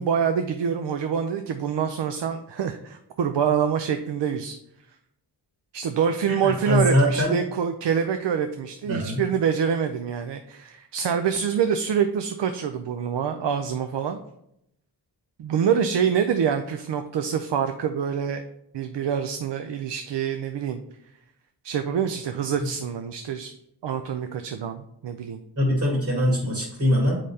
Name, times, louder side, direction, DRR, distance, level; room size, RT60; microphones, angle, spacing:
voice 1, 0.0-4.6 5.7-14.2 15.4-18.4 18.7-20.8 21.6-23.5 23.8-25.4, right 7 dB, 80° right, 7 dB, 0.5 m, -26 dB
voice 2, 6.3-7.4 8.9-9.2 25.6-27.2, equal, 40° right, -2 dB, 1.9 m, -22 dB
7.4 x 5.0 x 2.7 m, 0.78 s
wide cardioid pair, 65°, 42 cm